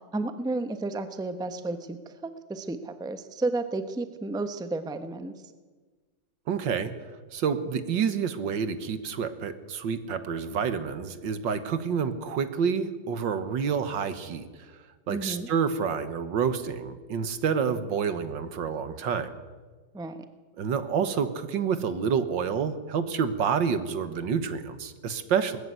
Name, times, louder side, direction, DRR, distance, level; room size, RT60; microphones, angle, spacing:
voice 1, 0.1-5.3 15.1-15.5 19.9-20.3, right 2 dB, 5° right, 9 dB, 0.7 m, -32 dB
voice 2, 6.5-6.9 7.3-14.7 15.1-19.3 20.6-25.6, right 6 dB, 80° right, 11 dB, 2.0 m, -28 dB
19.5 x 14.0 x 9.5 m, 1.4 s
omnidirectional pair, 2.0 m